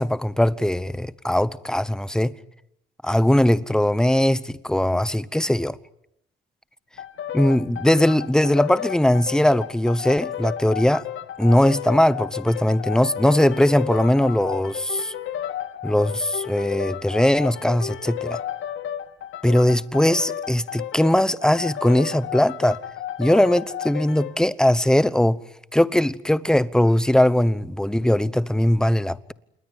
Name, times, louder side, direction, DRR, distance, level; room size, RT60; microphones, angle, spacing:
voice 1, 0.0-2.3 3.0-5.8 7.3-11.0 11.4-15.1 15.8-18.4 19.4-22.8 23.2-25.4 25.7-29.3, left 1 dB, 5° left, 1.0 m, -20 dB
sound 1, 7.0-24.4, left 10 dB, 80° left, 2.0 m, -33 dB
27.5 x 21.0 x 9.2 m
cardioid pair, 90°, 20 cm